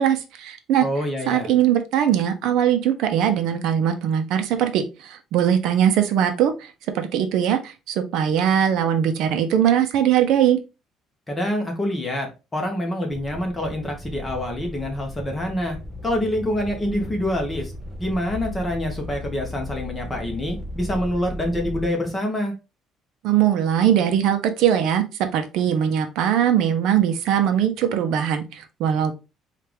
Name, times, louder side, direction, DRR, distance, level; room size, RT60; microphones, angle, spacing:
voice 1, 0.0-0.9 1.3-10.6 23.2-29.1, right 9 dB, 65° right, 7 dB, 0.6 m, -21 dB
voice 2, 0.8-1.5 11.3-15.8 16.0-17.7 18.0-22.5, left 1 dB, 15° left, 1 dB, 1.0 m, -26 dB
sound 1, 13.1-21.9, left 1 dB, 10° right, 0.6 m, -36 dB
4.3 x 2.5 x 3.4 m, 0.28 s
cardioid pair, 170°, 0 cm